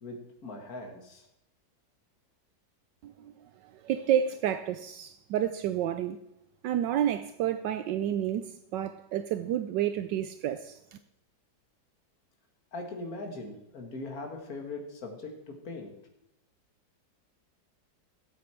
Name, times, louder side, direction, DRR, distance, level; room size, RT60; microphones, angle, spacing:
voice 1, 0.0-1.3 12.7-15.9, left 2 dB, 55° left, 2.4 m, -40 dB
voice 2, 3.8-6.2 6.6-10.8, right 10 dB, 80° right, 1.3 m, -30 dB
16.0 x 8.5 x 4.5 m
omnidirectional pair, 1.9 m